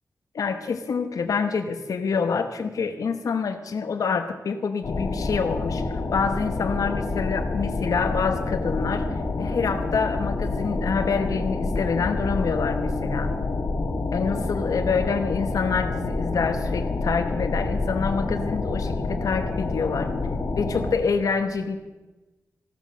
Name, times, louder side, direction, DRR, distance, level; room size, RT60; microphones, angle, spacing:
voice 1, 0.3-9.1 9.4-13.3 14.1-20.1 20.6-21.8, left 5 dB, 75° left, 6 dB, 1.0 m, -26 dB
sound 1, 4.8-20.9, left 3 dB, 60° left, 1.8 m, -28 dB
14.0 x 12.0 x 6.3 m, 1.1 s
wide cardioid pair, 160°, 6 cm